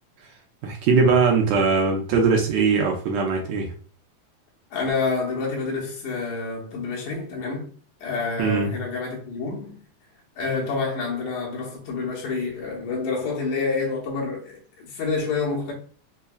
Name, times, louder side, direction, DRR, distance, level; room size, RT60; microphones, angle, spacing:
voice 1, 0.6-3.7 8.4-8.7, right 4 dB, 75° right, 1.8 m, -20 dB
voice 2, 4.7-7.7 8.0-9.8 10.4-15.7, left 4 dB, 75° left, 2.4 m, -28 dB
5.4 x 2.3 x 2.2 m
omnidirectional pair, 3.5 m